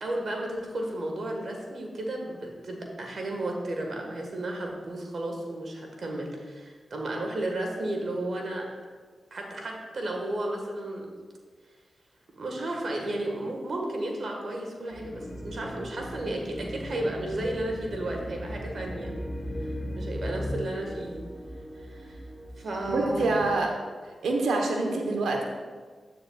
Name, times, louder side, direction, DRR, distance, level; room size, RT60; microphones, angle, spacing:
voice 1, 0.0-8.7 9.3-11.1 12.4-19.1 19.6-21.2 21.8-22.2 22.6-23.3 24.7-25.0, right 1 dB, 65° right, 1 dB, 1.5 m, -33 dB
sound 1, 14.9-20.0, equal, 55° left, 1.5 m, -42 dB
sound 2, 15.2-23.5, equal, 10° left, 1.0 m, -38 dB
voice 2, 22.9-23.8 24.2-25.4, right 2 dB, 90° right, 2 dB, 1.0 m, -26 dB
10.0 x 8.8 x 2.4 m, 1.5 s
cardioid pair, 45°, 0 cm